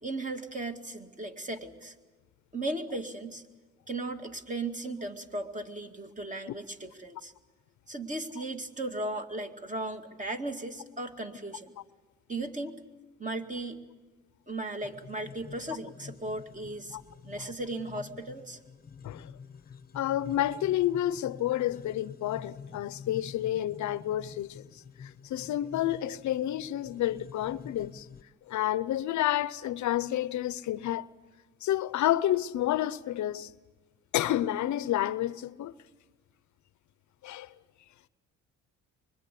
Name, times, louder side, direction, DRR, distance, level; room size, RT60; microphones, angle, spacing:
voice 1, 0.0-1.9 2.5-3.4 3.9-7.3 7.9-11.7 12.3-12.8 13.2-13.8 14.5-17.0 17.2-18.6, right 2 dB, 25° right, 2.3 m, -36 dB
sound 1, 14.8-28.2, left 6 dB, 30° left, 0.9 m, -48 dB
voice 2, 19.9-28.1 28.5-31.1 31.6-33.5 34.1-35.7 37.2-37.5, left 13 dB, 70° left, 0.7 m, -30 dB
24.5 x 22.0 x 8.5 m
cardioid pair, 90°, 30 cm